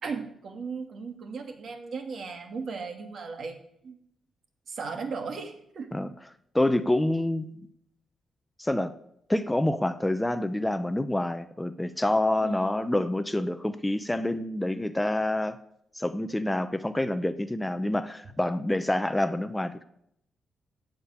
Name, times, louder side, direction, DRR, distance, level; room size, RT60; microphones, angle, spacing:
voice 1, 0.0-4.0 4.7-5.9 12.4-12.7, right 5 dB, 60° right, 5 dB, 2.3 m, -37 dB
voice 2, 6.5-7.6 8.6-8.9 9.3-15.6 15.9-19.8, left 1 dB, 10° left, 11 dB, 0.7 m, -27 dB
15.5 x 5.3 x 9.0 m, 0.72 s
cardioid pair, 110°, 0 cm